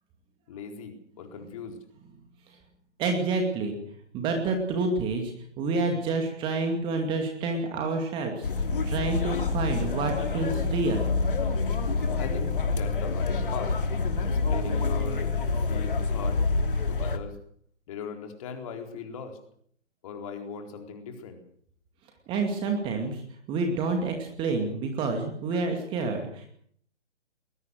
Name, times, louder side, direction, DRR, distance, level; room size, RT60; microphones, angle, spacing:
voice 1, 0.5-1.8 12.2-13.7 14.2-15.2 15.7-16.4 16.9-17.4 17.9-19.4 20.0-21.4 25.5-25.6, left 6 dB, 30° left, 4 dB, 4.1 m, -39 dB
voice 2, 3.0-3.8 4.1-8.5 8.8-11.1 22.3-23.2 23.5-26.5, right 3 dB, 15° right, 3 dB, 2.4 m, -28 dB
sound 1, 8.4-17.2, left 4 dB, 50° left, 2.9 m, -27 dB
22.0 x 21.0 x 6.4 m, 0.64 s
figure-of-eight pair, 135°, 35 cm